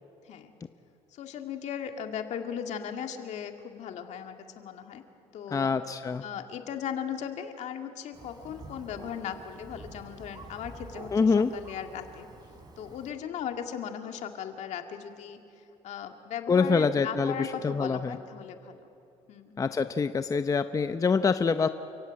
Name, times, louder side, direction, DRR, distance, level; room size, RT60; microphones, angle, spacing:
voice 1, 1.1-5.0 5.3-5.8 6.2-12.3 12.8-15.4 15.8-18.9 19.3-19.6, left 8 dB, 65° left, 5 dB, 2.0 m, -37 dB
voice 2, 5.5-6.2 11.1-11.5 16.5-18.2 19.6-21.7, left 5 dB, 25° left, 10 dB, 0.7 m, -25 dB
Thunder, 8.1-13.1, right 3 dB, 35° right, 3.7 m, -47 dB
29.0 x 15.5 x 8.9 m, 2.8 s
supercardioid pair, 90°, 13 cm